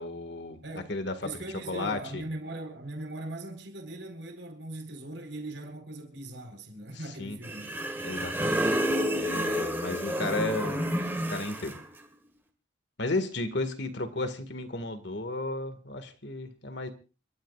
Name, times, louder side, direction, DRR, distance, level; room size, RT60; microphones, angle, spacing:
voice 1, 0.0-0.6 0.9-1.3 1.7-2.2 7.0-7.4 8.0-8.8 9.2-10.8 11.3-11.8 13.0-16.9, left 2 dB, 65° left, 2.0 m, -33 dB
voice 2, 0.6-0.9 1.2-7.7, right 1 dB, 70° right, 4.5 m, -40 dB
sound 1, 7.4-11.8, equal, 10° right, 1.9 m, -29 dB
29.0 x 13.0 x 2.5 m
head